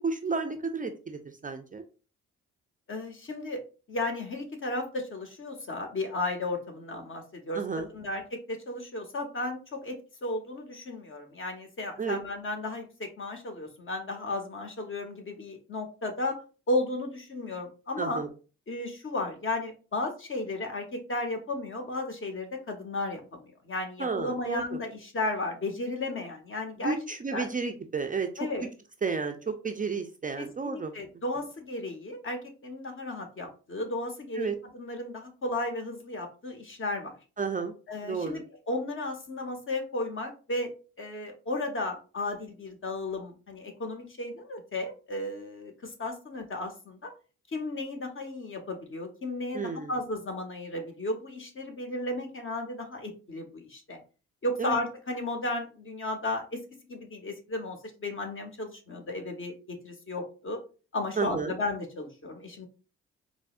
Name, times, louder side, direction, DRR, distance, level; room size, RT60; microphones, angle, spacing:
voice 1, 0.0-1.8 7.5-7.9 12.0-12.2 18.0-18.3 24.0-24.8 26.8-28.5 29.0-30.9 34.4-34.5 37.4-37.7 38.0-38.4 49.5-49.9 54.6-54.8 61.2-61.6, right 4 dB, 25° right, 6 dB, 0.5 m, -32 dB
voice 2, 2.9-3.6 3.9-16.4 16.7-18.2 18.7-27.0 27.3-27.5 28.4-28.6 30.4-37.1 37.9-40.7 41.0-47.1 47.5-54.0 54.4-56.6 56.9-60.6 60.9-62.7, left 2 dB, 40° left, 4 dB, 1.1 m, -34 dB
4.6 x 2.0 x 2.4 m, 0.35 s
hypercardioid pair, 45°, 32 cm